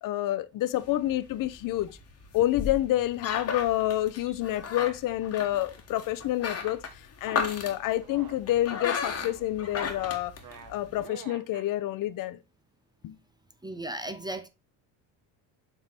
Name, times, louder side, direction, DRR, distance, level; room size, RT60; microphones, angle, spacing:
voice 1, 0.0-1.9 2.3-6.8 7.2-10.3 10.7-12.4 13.0-13.2, left 14 dB, 50° left, 0.7 m, -28 dB
sound 1, 0.8-11.0, left 6 dB, 35° left, 1.3 m, -36 dB
sound 2, 7.6-11.7, right 6 dB, 45° right, 1.1 m, -49 dB
voice 2, 13.6-14.5, right 1 dB, 10° right, 0.5 m, -35 dB
6.7 x 3.8 x 4.4 m
cardioid pair, 115°, 44 cm